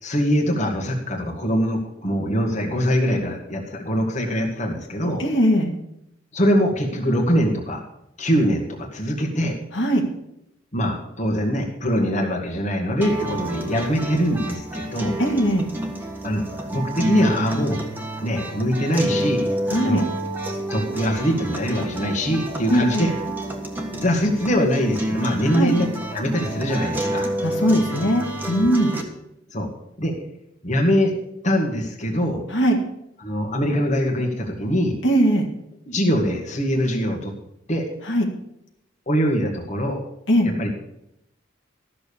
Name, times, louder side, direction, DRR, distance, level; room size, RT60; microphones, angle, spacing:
voice 1, 0.0-5.2 6.3-7.8 8.2-9.6 10.7-15.2 16.2-17.8 18.2-19.5 19.8-20.0 20.7-23.1 23.9-27.3 29.5-29.7 30.0-30.1 30.6-31.2 31.4-32.4 33.2-35.0 35.9-37.3 37.7-37.9 39.1-40.0 40.4-40.7, equal, 40° left, 0 dB, 1.9 m, -23 dB
voice 2, 5.2-5.7 9.7-10.0 15.2-15.7 19.7-20.0 22.7-23.1 25.5-25.8 27.4-29.0 32.5-32.8 35.0-35.5 38.1-38.3 40.3-40.5, equal, 70° left, 1 dB, 1.9 m, -20 dB
sound 1, 13.0-29.0, right 1 dB, 10° right, 1.5 m, -29 dB
13.0 x 6.7 x 7.0 m, 0.80 s
head